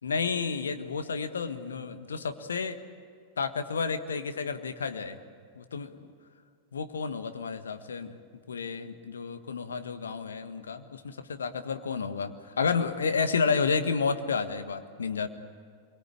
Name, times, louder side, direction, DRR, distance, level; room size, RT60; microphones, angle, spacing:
voice 1, 0.0-2.8 3.4-5.2 5.5-6.1 6.7-8.2 8.5-15.3, left 5 dB, 70° left, 9 dB, 1.5 m, -31 dB
25.5 x 23.0 x 8.7 m, 2.1 s
figure-of-eight pair, 90°, 0 cm